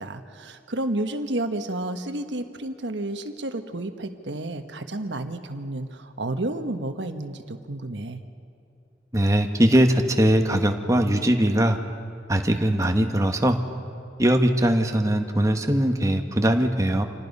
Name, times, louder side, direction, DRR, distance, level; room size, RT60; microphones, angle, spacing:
voice 1, 0.0-8.2, right 1 dB, 75° right, 7 dB, 1.3 m, -31 dB
voice 2, 9.1-11.8 12.3-13.6 14.2-17.0, right 1 dB, 20° right, 5 dB, 1.3 m, -21 dB
27.0 x 18.5 x 5.4 m, 2.7 s
head